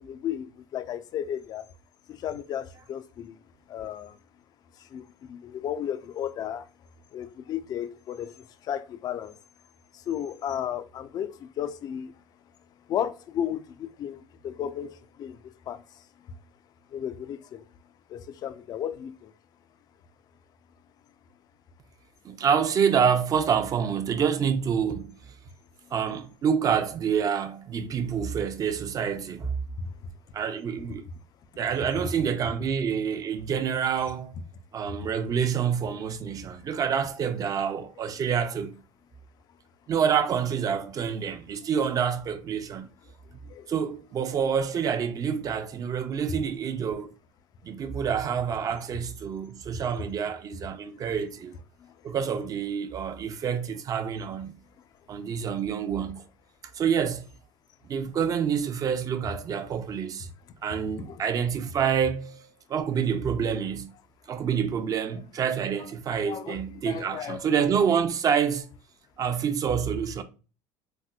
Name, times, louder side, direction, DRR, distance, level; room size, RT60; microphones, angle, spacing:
voice 1, 0.0-1.7 2.1-3.4 3.7-4.2 4.8-6.7 7.1-9.4 9.9-12.1 12.9-16.4 16.9-17.6 18.1-19.3 29.8-29.9 43.4-43.7 51.8-51.9 61.1-61.2 66.2-67.8, left 9 dB, 45° left, 0.4 m, -34 dB
voice 2, 22.2-25.3 25.9-29.6 30.3-31.0 31.6-34.4 34.7-38.8 39.9-42.9 43.7-47.1 47.6-51.6 52.0-54.6 55.1-56.2 56.7-57.3 57.9-60.3 60.6-63.9 64.3-68.7 69.2-70.2, right 7 dB, 40° right, 0.5 m, -27 dB
4.2 x 2.1 x 2.3 m
supercardioid pair, 95°, 9 cm